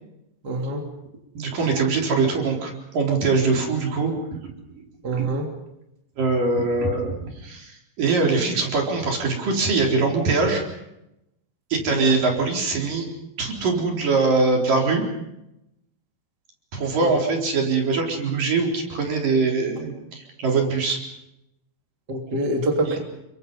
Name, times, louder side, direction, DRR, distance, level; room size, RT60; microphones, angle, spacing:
voice 1, 0.4-0.8 5.0-5.5 11.9-12.1 17.0-17.1 22.1-23.0, right 1 dB, 25° right, 1 dB, 3.5 m, -25 dB
voice 2, 1.4-4.1 5.2-5.3 6.2-7.2 7.4-10.6 11.7-13.1 13.4-15.0 16.7-21.0 22.9-23.0, right 4 dB, 60° right, 1 dB, 5.7 m, -22 dB
30.0 x 24.0 x 5.5 m, 0.85 s
omnidirectional pair, 4.3 m